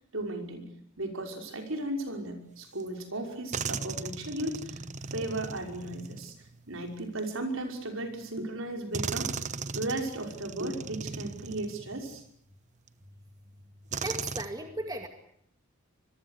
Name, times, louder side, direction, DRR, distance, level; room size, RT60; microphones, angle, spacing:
voice 1, 0.1-0.7 1.0-9.4 9.7-12.2, right 1 dB, 60° right, 4 dB, 5.7 m, -35 dB
sound 1, 2.8-2.9 3.5-7.1 8.1-8.2 8.9-12.3 12.9-13.0 13.9-14.5, right 5 dB, 35° right, 1.0 m, -37 dB
voice 2, 14.0-15.1, right 1 dB, 15° right, 5 dB, 2.2 m, -36 dB
26.0 x 21.5 x 8.2 m, 0.69 s
head